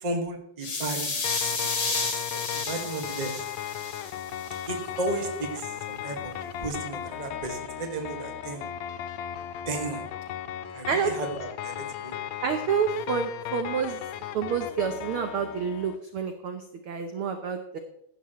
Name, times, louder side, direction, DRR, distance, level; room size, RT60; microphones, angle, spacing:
voice 1, 0.0-3.4 4.7-6.3 6.6-8.7 9.6-10.0 10.7-12.1, right 2 dB, 20° right, 3 dB, 1.2 m, -34 dB
sound 1, 0.6-4.7, left 3 dB, 55° left, 3.8 m, -31 dB
sound 2, 1.2-16.0, left 11 dB, 75° left, 1.8 m, -36 dB
voice 2, 12.4-14.0 14.3-17.8, right 7 dB, 65° right, 6 dB, 1.4 m, -28 dB
15.5 x 12.0 x 3.1 m, 0.75 s
omnidirectional pair, 3.4 m